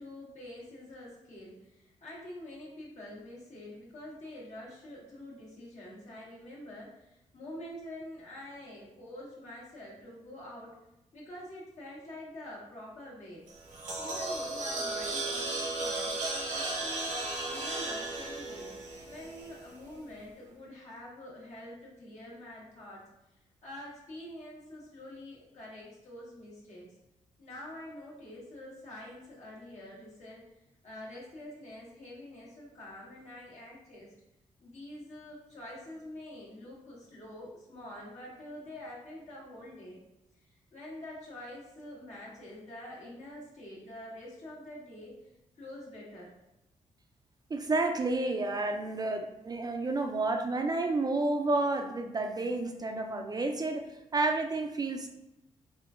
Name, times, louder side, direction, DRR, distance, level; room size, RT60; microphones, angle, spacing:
voice 1, 0.0-10.7 11.1-13.4 14.0-17.2 17.5-18.7 19.0-23.1 23.6-26.9 27.4-30.4 30.8-34.1 34.6-40.0 40.4-45.2 45.6-46.3, left 1 dB, 60° left, -6 dB, 1.4 m, -46 dB
sound 1, 13.5-19.8, right 2 dB, 80° right, 0.8 m, -35 dB
voice 2, 47.5-53.9 54.1-55.1, right 2 dB, 30° right, 5 dB, 0.3 m, -30 dB
3.5 x 2.5 x 2.4 m, 0.91 s
cardioid pair, 75°, 13 cm